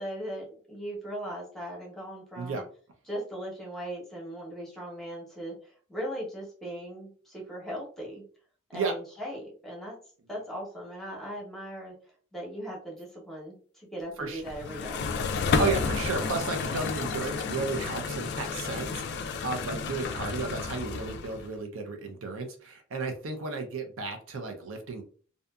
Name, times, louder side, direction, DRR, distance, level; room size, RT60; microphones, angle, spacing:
voice 1, 0.0-2.6 3.1-8.2 8.7-9.9 10.3-11.9 12.3-15.1, equal, ahead, -4 dB, 0.8 m, -38 dB
sound 1, 14.5-21.5, left 5 dB, 50° left, 0.3 m, -31 dB
voice 2, 15.6-25.0, right 4 dB, 65° right, 5 dB, 0.5 m, -33 dB
2.6 x 2.5 x 2.2 m, 0.43 s
head